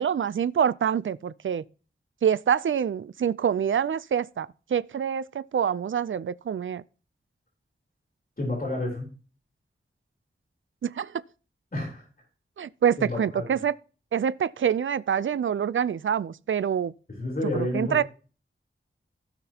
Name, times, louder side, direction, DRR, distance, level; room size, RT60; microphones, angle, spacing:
voice 1, 0.0-1.6 2.2-6.8 10.8-11.2 12.6-13.8 14.1-16.9 17.5-18.0, right 8 dB, 75° right, 0.4 m, -26 dB
voice 2, 8.4-9.1 11.7-12.1 13.0-13.5 17.2-18.0, left 1 dB, 45° left, 3.8 m, -30 dB
16.0 x 5.9 x 2.9 m
wide cardioid pair, 75°, 21 cm